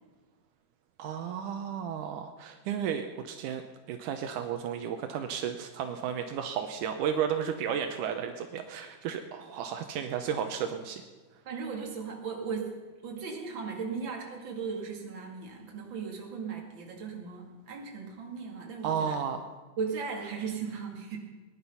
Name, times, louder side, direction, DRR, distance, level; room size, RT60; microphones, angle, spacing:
voice 1, 1.0-11.0 18.8-19.5, right 8 dB, 80° right, 7 dB, 2.3 m, -33 dB
voice 2, 11.5-12.7 13.0-19.2 19.8-21.2, right 5 dB, 40° right, 1 dB, 2.6 m, -37 dB
19.5 x 10.5 x 5.7 m, 1.3 s
omnidirectional pair, 3.8 m